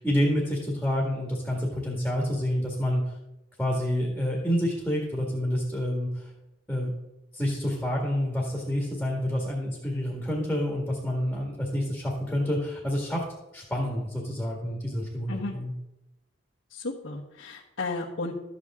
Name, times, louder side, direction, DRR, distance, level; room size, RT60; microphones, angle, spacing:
voice 1, 0.0-3.0 3.6-6.3 6.7-6.9 7.3-13.2 13.5-15.7, equal, ahead, -2 dB, 1.8 m, -28 dB
voice 2, 16.7-18.3, left 3 dB, 85° left, -6 dB, 1.4 m, -33 dB
12.5 x 8.2 x 3.7 m, 0.93 s
head